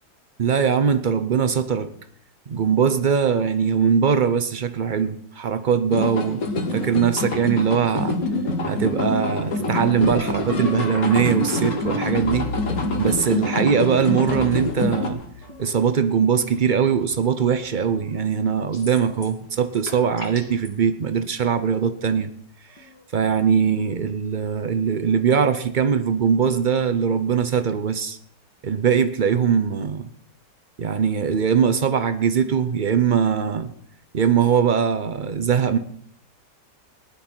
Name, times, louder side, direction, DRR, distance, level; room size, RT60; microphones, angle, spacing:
voice 1, 0.4-1.9 2.5-6.4 6.7-8.2 8.7-12.5 13.0-15.2 15.6-22.3 23.1-28.2 28.6-30.1 30.8-33.7 34.1-35.8, right 7 dB, 70° right, 10 dB, 0.4 m, -21 dB
sound 1, 5.9-15.1, left 2 dB, 55° left, 1.9 m, -26 dB
sound 2, 8.2-15.9 16.6-17.1 17.5-18.2 19.5-19.6 20.3-20.6 22.8-22.9 25.2-25.3, left 1 dB, 75° left, 2.6 m, -34 dB
sound 3, 18.7-19.4 19.7-20.7, left 1 dB, 35° left, 3.5 m, -40 dB
18.5 x 11.0 x 4.5 m, 0.64 s
omnidirectional pair, 1.9 m